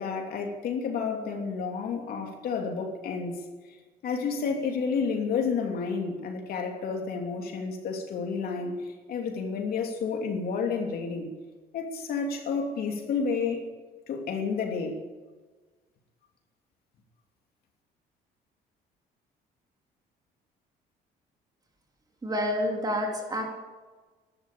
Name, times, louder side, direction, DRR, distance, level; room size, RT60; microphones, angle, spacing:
voice 1, 0.0-3.4 4.0-8.8 9.1-11.3 11.7-13.6 14.1-15.0, left 5 dB, 65° left, 2 dB, 3.0 m, -30 dB
voice 2, 22.2-23.4, equal, 20° right, 1 dB, 3.7 m, -28 dB
13.0 x 12.5 x 8.6 m, 1.3 s
cardioid pair, 110°, 17 cm